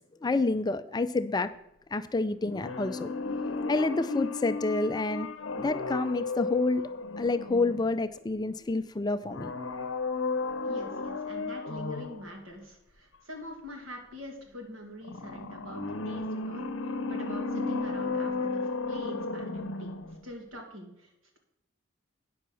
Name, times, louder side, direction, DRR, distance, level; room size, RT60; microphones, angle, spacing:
voice 1, 0.2-1.5 1.9-3.1 3.7-5.3 5.6-6.8 7.2-9.5, left 3 dB, 20° left, 0.4 m, -28 dB
sound 1, 2.4-8.2 9.2-12.3 15.0-20.2 20.5-20.6, left 3 dB, 75° left, 0.7 m, -34 dB
voice 2, 10.6-21.4, equal, 85° right, 2.6 m, -44 dB
9.4 x 6.1 x 6.9 m
head